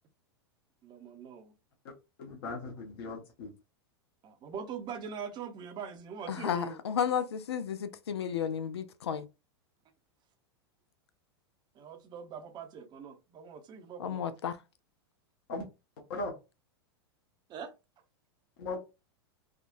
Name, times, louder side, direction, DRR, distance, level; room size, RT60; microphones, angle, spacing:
voice 1, 0.8-1.5 4.2-6.8 11.8-14.3 17.5-17.7, right 7 dB, 35° right, 0.7 m, -42 dB
voice 2, 2.2-3.5 15.5-15.7 16.1-16.3 18.6-18.8, left 2 dB, 60° left, 1.0 m, -38 dB
voice 3, 6.3-9.3 14.0-14.5, left 8 dB, 85° left, 0.4 m, -32 dB
3.6 x 2.3 x 2.5 m
hypercardioid pair, 105°, 13 cm